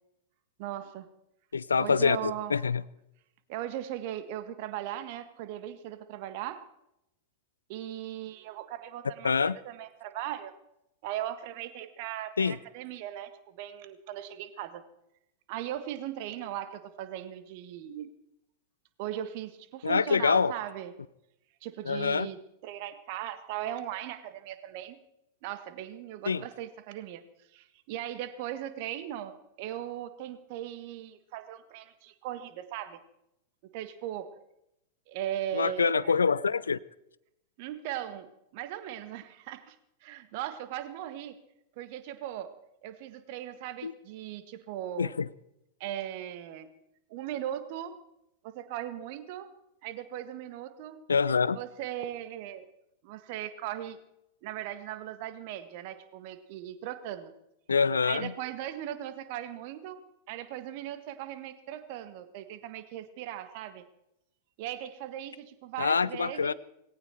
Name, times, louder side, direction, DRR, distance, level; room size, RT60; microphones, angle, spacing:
voice 1, 0.6-1.1 1.8-2.6 3.5-6.6 7.7-10.5 11.0-14.8 15.5-18.1 19.0-20.9 21.6-25.0 25.4-27.2 27.5-33.0 33.7-34.3 35.1-36.1 37.6-38.3 38.5-39.7 40.0-41.4 41.8-42.5 42.8-45.1 45.8-46.7 47.1-47.9 48.4-49.5 49.8-51.0 51.5-52.6 53.0-54.0 54.4-57.3 58.0-60.0 60.3-63.9 64.6-66.5, right 12 dB, 50° right, 11 dB, 1.6 m, -38 dB
voice 2, 1.5-2.8 9.2-9.6 12.4-12.6 19.8-20.5 21.9-22.3 26.3-26.4 35.5-36.8 43.8-43.9 45.0-45.3 51.1-51.6 57.7-58.3 65.8-66.5, left 5 dB, 75° left, 20 dB, 0.5 m, -25 dB
19.0 x 17.5 x 4.4 m, 0.83 s
figure-of-eight pair, 90°, 0 cm